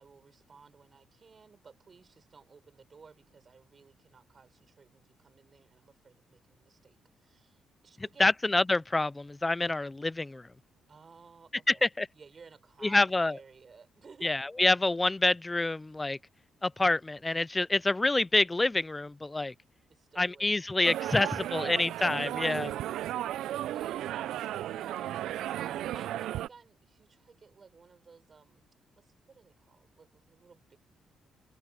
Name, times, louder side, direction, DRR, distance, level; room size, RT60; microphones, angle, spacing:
voice 1, 0.0-8.3 10.9-11.9 12.1-14.3 19.9-20.7 21.2-21.8 23.1-28.6 29.0-30.8, right 5 dB, 40° right, 6.2 m, -56 dB
voice 2, 8.2-10.5 11.7-12.1 12.8-13.4 14.2-16.2 16.6-19.5 20.2-22.7, left 2 dB, 15° left, 0.4 m, -27 dB
sound 1, 20.8-26.5, right 13 dB, 80° right, 0.4 m, -34 dB
cardioid pair, 90°, 0 cm